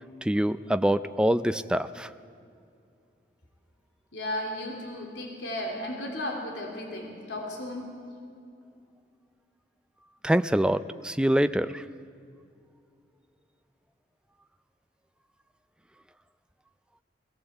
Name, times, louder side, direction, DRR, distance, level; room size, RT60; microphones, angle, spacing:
voice 1, 0.2-2.1 10.2-11.8, right 1 dB, 5° right, 11 dB, 0.4 m, -25 dB
voice 2, 4.1-7.9, left 1 dB, 90° left, 1 dB, 3.2 m, -34 dB
21.0 x 16.5 x 8.0 m, 2.5 s
head